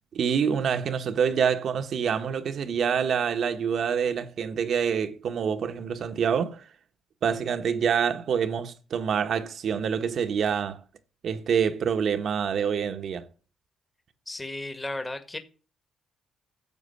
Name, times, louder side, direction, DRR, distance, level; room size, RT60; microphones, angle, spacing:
voice 1, 0.1-6.6 7.2-10.8 11.2-13.3, right 7 dB, 60° right, 1.3 m, -26 dB
voice 2, 14.3-15.4, left 2 dB, 15° left, 1.7 m, -34 dB
11.0 x 7.3 x 8.6 m
cardioid pair, 90°, 0 cm